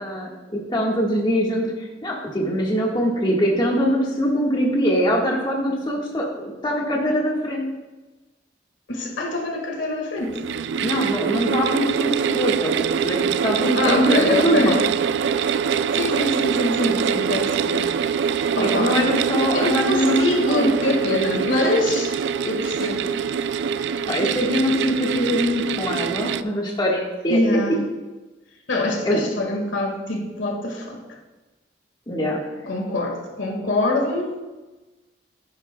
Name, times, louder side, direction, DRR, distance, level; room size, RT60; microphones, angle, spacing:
voice 1, 0.0-7.7 10.8-14.8 18.6-20.7 24.1-27.6 29.0-29.2 32.1-32.4, equal, 25° left, -2 dB, 1.5 m, -23 dB
voice 2, 8.9-10.4 13.8-14.8 15.9-17.9 18.3-19.0 19.4-22.2 22.4-23.1 27.3-27.8 28.7-31.2 32.7-34.4, left 2 dB, 75° left, 2 dB, 1.7 m, -24 dB
sound 1, 10.2-26.4, right 7 dB, 65° right, 0.3 m, -24 dB
11.0 x 11.0 x 2.2 m, 1.1 s
head